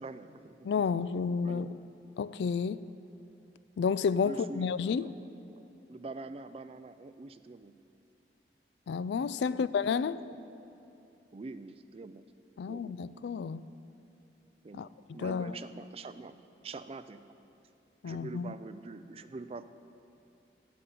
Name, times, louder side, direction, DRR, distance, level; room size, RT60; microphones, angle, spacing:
voice 1, 0.0-0.7 1.4-1.7 4.2-5.6 5.9-7.7 9.5-9.7 11.3-12.2 12.7-13.1 14.6-16.4 16.6-17.2 18.0-19.6, right 3 dB, 35° right, 12 dB, 0.4 m, -45 dB
voice 2, 0.6-1.7 2.2-2.9 3.8-5.1 8.9-10.2 12.6-13.6 14.7-15.6 18.0-18.5, left 6 dB, 80° left, 16 dB, 0.3 m, -31 dB
14.0 x 5.4 x 8.3 m, 2.8 s
head